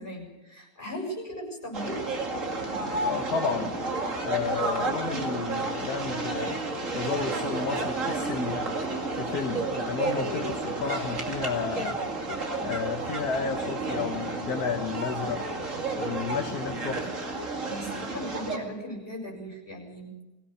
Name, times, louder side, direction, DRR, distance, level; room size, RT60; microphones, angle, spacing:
voice 1, 0.0-2.1 17.4-20.2, equal, 30° left, 0 dB, 7.3 m, -38 dB
sound 1, 1.7-18.6, right 2 dB, 45° right, 2.7 m, -31 dB
voice 2, 3.0-3.8 4.2-6.7 6.9-8.7 9.1-12.0 12.6-15.5 16.0-17.2, left 6 dB, 60° left, 5 dB, 1.7 m, -32 dB
23.5 x 17.0 x 6.8 m, 1.1 s
omnidirectional pair, 1.9 m